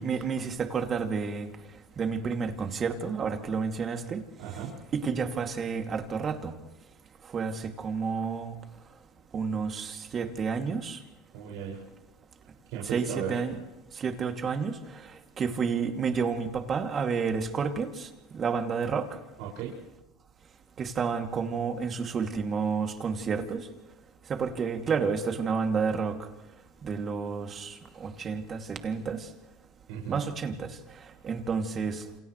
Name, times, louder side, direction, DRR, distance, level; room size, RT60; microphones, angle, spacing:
voice 1, 0.0-1.5 2.0-4.2 4.9-6.6 7.3-8.6 9.3-11.0 12.8-13.5 13.9-15.1 15.4-19.1 20.8-23.7 24.3-26.2 26.8-29.3 30.1-30.8 31.2-32.0, right 5 dB, 35° right, 2.6 m, -30 dB
voice 2, 4.4-4.7 11.3-11.8 12.7-13.4 19.4-19.8 29.9-30.2, right 8 dB, 70° right, 6.0 m, -36 dB
29.0 x 28.0 x 3.3 m
supercardioid pair, 110°, 0 cm